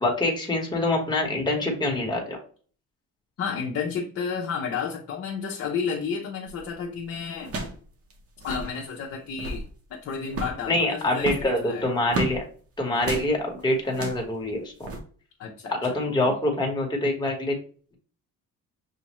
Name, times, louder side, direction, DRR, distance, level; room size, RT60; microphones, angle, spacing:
voice 1, 0.0-2.4 10.7-12.4 12.8-14.9 15.7-17.6, left 1 dB, 15° left, 0 dB, 1.3 m, -25 dB
voice 2, 3.4-7.5 8.4-11.9 15.4-16.4, left 6 dB, 50° left, -1 dB, 0.7 m, -32 dB
sound 1, 6.5-6.7 7.4-7.8 8.1-8.2 8.4-8.7 9.2-9.7 10.3-10.6 11.2-12.4 13.0-13.3 13.9-14.3 14.8-15.0, right 2 dB, 45° right, 1.0 m, -32 dB
6.2 x 2.5 x 3.0 m, 0.43 s
cardioid pair, 130°, 32 cm